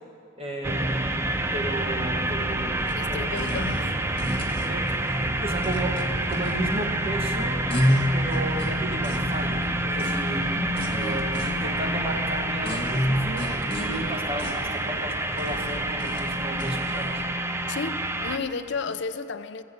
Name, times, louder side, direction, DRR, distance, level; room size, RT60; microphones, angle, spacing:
voice 1, 0.4-3.8 4.5-10.5 10.9-17.2, right 1 dB, 30° right, 1.5 m, -34 dB
sound 1, 0.6-18.4, right 1 dB, 15° right, 0.5 m, -28 dB
sound 2, 2.8-17.2, equal, 30° left, 1.3 m, -32 dB
voice 2, 3.0-4.0 10.5-10.9 17.7-19.6, left 4 dB, 60° left, 0.6 m, -33 dB
15.5 x 8.0 x 8.1 m
head